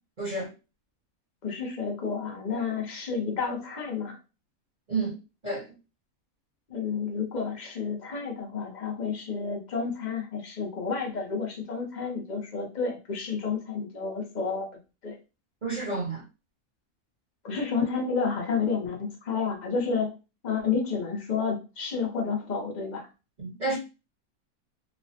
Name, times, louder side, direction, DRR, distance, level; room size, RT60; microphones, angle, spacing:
voice 1, 0.2-0.5 4.9-5.2 5.4-5.7 15.6-16.2 23.4-23.8, right 3 dB, 35° right, 1.0 m, -30 dB
voice 2, 1.4-4.2 6.7-14.7 15.0-15.2 17.4-20.1 20.4-23.1, left 5 dB, 45° left, 0.6 m, -30 dB
3.1 x 2.0 x 2.7 m
omnidirectional pair, 1.5 m